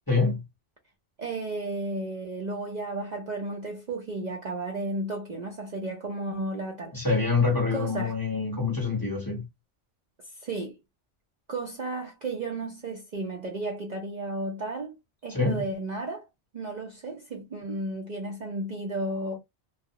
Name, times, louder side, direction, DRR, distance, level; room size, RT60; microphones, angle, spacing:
voice 1, 0.1-0.4 6.9-9.5 15.3-15.6, left 4 dB, 20° left, 0.8 m, -26 dB
voice 2, 1.2-7.1 7.7-8.2 10.4-10.8 11.5-15.0 15.2-16.3 16.5-19.4, right 2 dB, 50° right, 0.6 m, -33 dB
2.4 x 2.0 x 2.7 m
omnidirectional pair, 1.2 m